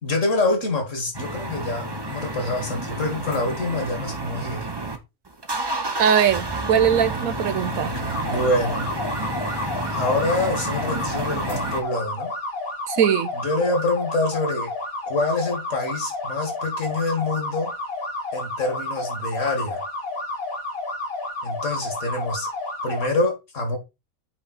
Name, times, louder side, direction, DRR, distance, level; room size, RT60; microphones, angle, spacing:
voice 1, 0.0-4.7 8.2-8.9 9.8-12.3 13.3-14.7 15.1-17.7 18.3-19.8 21.4-22.5 22.8-23.8, left 2 dB, 60° left, 2.4 m, -26 dB
sound 1, 1.1-5.0 5.3-11.8, right 2 dB, 20° right, 0.8 m, -30 dB
voice 2, 6.0-7.9 12.9-13.3, right 8 dB, 75° right, 1.2 m, -20 dB
sound 2, 8.1-23.1, left 2 dB, 85° left, 3.9 m, -31 dB
8.7 x 3.8 x 4.2 m
omnidirectional pair, 1.5 m